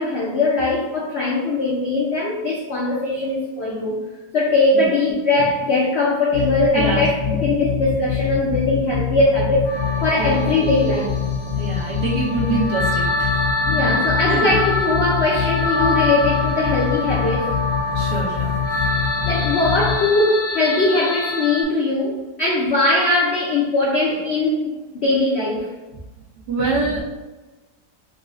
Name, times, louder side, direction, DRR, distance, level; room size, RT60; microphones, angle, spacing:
voice 1, 0.0-4.0 4.3-9.7 10.0-11.2 13.7-17.6 19.2-25.7, left 2 dB, 85° left, -4 dB, 0.5 m, -20 dB
sound 1, 6.3-19.9, left 7 dB, 45° right, 0.8 m, -25 dB
voice 2, 6.7-7.3 10.2-10.5 11.6-14.5 17.9-18.6 26.5-27.0, right 3 dB, 65° right, -1 dB, 1.2 m, -26 dB
sound 2, 9.6-21.6, left 2 dB, 70° left, 1.1 m, -25 dB
4.0 x 2.1 x 3.5 m, 1.1 s
omnidirectional pair, 1.9 m